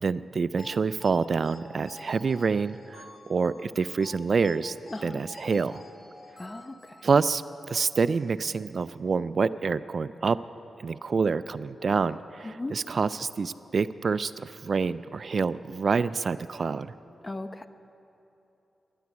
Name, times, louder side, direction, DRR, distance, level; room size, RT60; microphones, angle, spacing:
voice 1, 0.0-4.7 5.0-5.8 7.0-7.4 7.7-10.4 10.8-16.9, right 5 dB, 60° right, 16 dB, 0.3 m, -27 dB
sound 1, 0.6-7.4, left 2 dB, 45° left, 1.9 m, -50 dB
voice 2, 4.9-5.2 6.4-7.1 12.4-12.8 17.2-17.7, left 2 dB, 25° left, 10 dB, 0.7 m, -37 dB
12.5 x 10.5 x 8.2 m, 3.0 s
cardioid pair, 60°, 0 cm